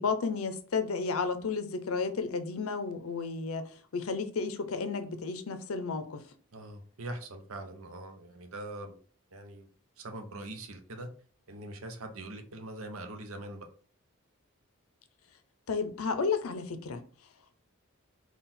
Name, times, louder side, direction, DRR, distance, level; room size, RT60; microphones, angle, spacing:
voice 1, 0.0-3.6 3.9-6.2 15.7-17.0, left 4 dB, 80° left, 0.6 m, -32 dB
voice 2, 6.5-9.0 9.3-9.7 10.0-11.1 11.5-13.7, right 2 dB, 75° right, 0.7 m, -42 dB
3.8 x 2.4 x 4.2 m
head